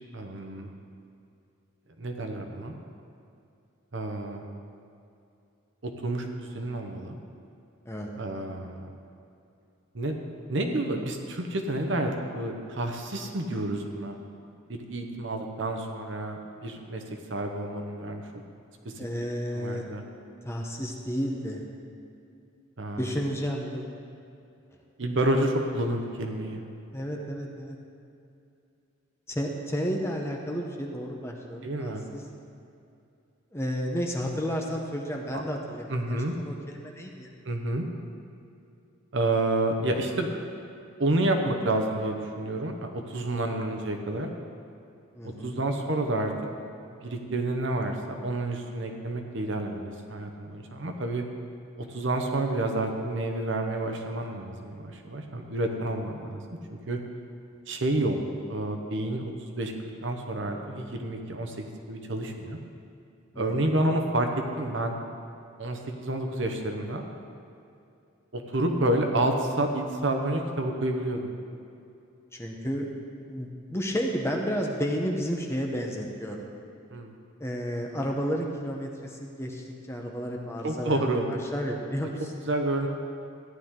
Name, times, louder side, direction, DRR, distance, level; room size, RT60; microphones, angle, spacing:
voice 1, 0.1-0.7 2.0-2.7 3.9-4.4 5.8-7.2 8.1-8.9 9.9-10.2 10.5-14.2 14.7-17.0 17.3-18.4 18.8-19.1 19.5-20.0 22.8-23.1 25.0-26.6 31.6-32.0 35.3-35.4 35.9-36.3 37.4-37.8 39.1-40.3 41.0-44.3 45.2-46.3 47.0-51.2 51.8-56.4 56.7-57.0 57.7-58.2 58.5-59.7 60.0-62.6 63.4-64.3 64.6-65.0 65.6-67.0 68.3-71.3 76.9-77.1 80.6-81.2 82.5-82.9, right 1 dB, 60° right, 4 dB, 1.0 m, -29 dB
voice 2, 19.0-19.8 20.4-21.6 23.0-23.8 26.9-27.8 29.3-32.2 33.5-37.3 45.1-45.6 63.3-63.6 72.3-72.9 73.3-76.5 77.4-82.3, equal, 10° left, 0 dB, 0.8 m, -32 dB
14.5 x 9.8 x 3.7 m, 2.6 s
head